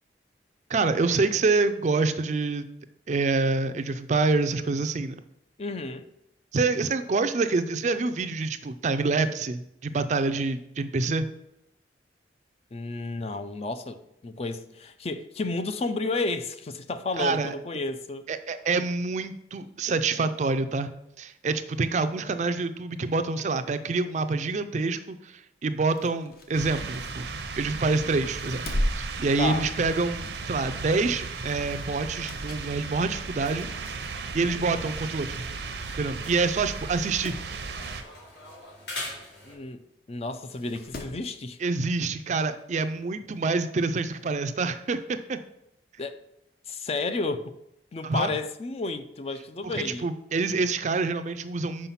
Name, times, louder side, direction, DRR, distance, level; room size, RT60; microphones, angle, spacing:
voice 1, 0.7-2.7 3.1-5.2 6.5-11.3 17.2-17.5 18.3-20.9 21.2-27.3 27.6-28.6 29.0-33.7 34.3-35.4 36.0-37.4 41.6-45.4 48.0-48.3 49.6-51.9, right 3 dB, 40° right, 0.4 m, -27 dB
voice 2, 5.6-6.1 12.7-18.3 29.4-29.7 39.4-41.6 46.0-46.2 46.7-47.5 47.9-50.1, left 3 dB, 35° left, 0.4 m, -32 dB
sound 1, 25.8-27.7 28.2-30.1 30.5-30.7 32.0-32.8 33.2-33.3 34.2-34.3 34.6-34.7 34.8-34.9 35.8-36.0 36.3-36.4 36.8-37.5 39.3-39.4 40.4-41.3 42.6-42.7, equal, 55° left, 0.9 m, -36 dB
sound 2, 26.5-38.0, right 4 dB, 75° right, 0.7 m, -36 dB
sound 3, 31.4-39.5, left 2 dB, 75° left, 2.6 m, -44 dB
5.7 x 4.9 x 5.6 m
head